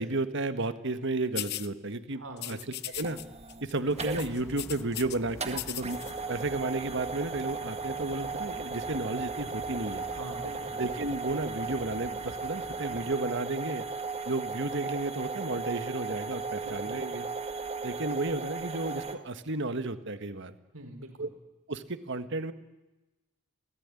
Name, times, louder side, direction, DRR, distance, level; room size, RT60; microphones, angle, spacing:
voice 1, 0.0-2.6 2.9-3.2 3.6-6.0 6.3-10.1 10.8-13.9 14.3-17.3 17.8-20.5 21.2-21.3 21.7-22.5, right 2 dB, 55° right, 10 dB, 1.6 m, -33 dB
sound 1, 1.4-1.7 2.4-3.2 3.5-3.7 4.0-5.2 5.5-6.1, left 14 dB, 50° left, 0.8 m, -38 dB
voice 2, 2.1-2.6 10.0-10.8 16.6-16.9 20.7-21.3, right 2 dB, 75° right, 6 dB, 4.6 m, -43 dB
sound 2, 2.9-19.2, right 4 dB, 30° right, 1.7 m, -36 dB
sound 3, 3.9-13.2, equal, 15° left, 1.6 m, -49 dB
27.5 x 18.0 x 9.8 m, 1.1 s
head